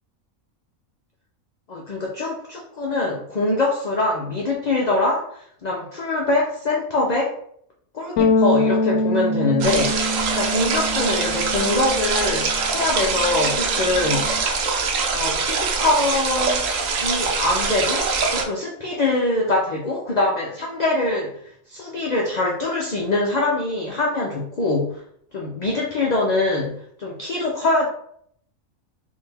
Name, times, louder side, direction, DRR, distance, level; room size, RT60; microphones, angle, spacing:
voice 1, 1.7-5.3 5.6-7.3 7.9-14.3 15.1-21.4 21.7-25.0 25.3-27.9, left 2 dB, 55° left, -2 dB, 0.4 m, -23 dB
Bass guitar, 8.2-14.4, left 2 dB, 75° left, 0.9 m, -25 dB
sound 1, 9.6-18.5, right 4 dB, 70° right, 1.0 m, -23 dB
4.2 x 2.6 x 3.3 m, 0.67 s
omnidirectional pair, 1.5 m